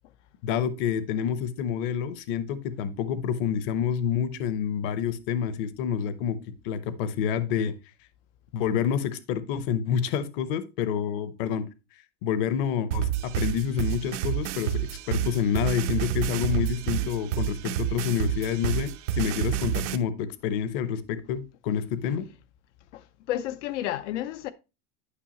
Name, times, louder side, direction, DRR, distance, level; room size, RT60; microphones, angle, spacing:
voice 1, 0.4-6.4 6.6-7.8 8.5-11.6 12.2-22.3, left 8 dB, 50° left, 0.8 m, -28 dB
sound 1, 12.9-20.0, right 11 dB, 80° right, 0.8 m, -29 dB
voice 2, 23.3-24.5, left 13 dB, 85° left, 0.6 m, -31 dB
9.9 x 5.5 x 2.9 m
supercardioid pair, 175°, 35 cm